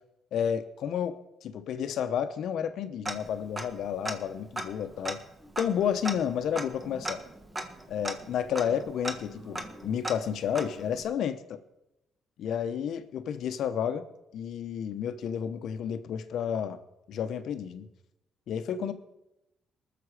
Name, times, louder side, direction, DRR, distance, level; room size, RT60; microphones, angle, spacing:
voice 1, 0.3-5.2 5.6-7.2 7.9-11.4 12.4-14.0 14.3-16.8 17.1-17.9 18.5-18.9, left 8 dB, 75° left, 10 dB, 1.0 m, -31 dB
Tick-tock, 3.0-3.8 4.0-4.1 4.5-11.0, right 1 dB, 15° right, 1.4 m, -38 dB
20.0 x 6.9 x 4.9 m, 0.90 s
cardioid pair, 90°, 0 cm